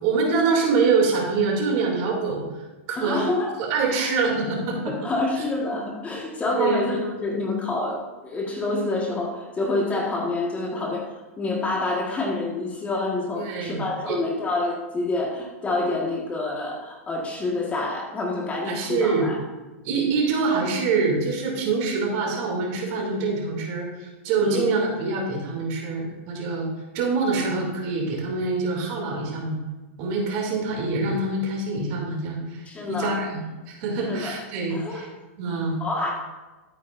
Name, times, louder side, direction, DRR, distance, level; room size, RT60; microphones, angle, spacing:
voice 1, 0.0-2.4 2.9-3.3 3.6-4.9 6.6-6.8 13.4-14.2 18.7-19.3 19.8-26.7 26.9-29.6 30.0-32.6 32.9-33.4 33.7-35.0 35.4-35.8, right 4 dB, 50° right, -1 dB, 2.9 m, -25 dB
voice 2, 3.0-3.5 3.9-4.1 4.9-11.1 11.4-19.4 24.4-24.7 32.7-33.2 34.1-34.4 34.7-35.0 35.8-36.1, left 2 dB, 20° left, -2 dB, 1.7 m, -27 dB
13.0 x 9.0 x 2.7 m, 1.2 s
hypercardioid pair, 125°, 8 cm